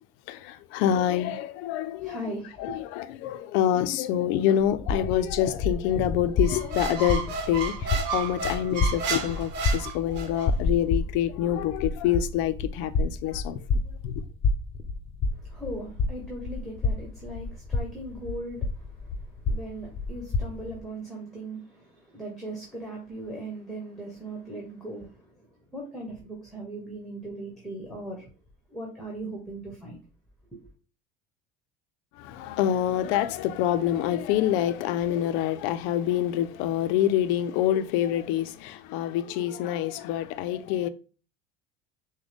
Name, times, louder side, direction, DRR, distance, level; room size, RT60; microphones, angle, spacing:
voice 1, 0.3-13.6 14.0-14.2 32.2-40.9, left 11 dB, 70° left, 0.5 m, -26 dB
voice 2, 2.0-2.8 15.4-18.6 19.5-25.1 25.7-28.2 28.7-30.0 30.5-30.6, right 1 dB, ahead, 1.3 m, -38 dB
sound 1, 4.6-20.8, left 3 dB, 30° left, 0.7 m, -30 dB
Squeak, 6.4-10.5, right 4 dB, 60° right, 1.0 m, -32 dB
6.1 x 2.2 x 3.4 m
cardioid pair, 120°, 20 cm